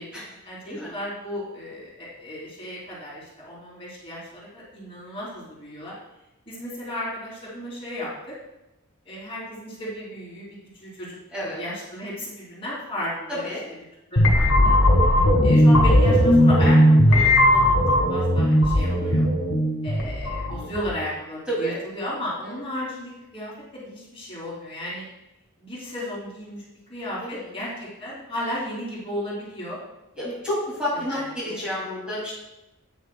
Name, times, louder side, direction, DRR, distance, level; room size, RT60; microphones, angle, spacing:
voice 1, 0.4-5.9 6.5-8.1 9.0-11.1 11.4-13.4 14.1-14.7 15.4-17.8 18.1-19.2 19.8-25.0 25.6-26.6 26.9-29.8 31.1-31.6, left 1 dB, 25° left, -7 dB, 3.2 m, -34 dB
voice 2, 13.3-13.6 18.9-19.2 21.5-21.8 22.4-22.6 27.2-27.5 30.2-32.3, equal, 5° right, -8 dB, 2.6 m, -30 dB
sound 1, 14.2-21.0, equal, 75° left, 1.8 m, -18 dB
9.2 x 8.8 x 2.3 m, 0.93 s
head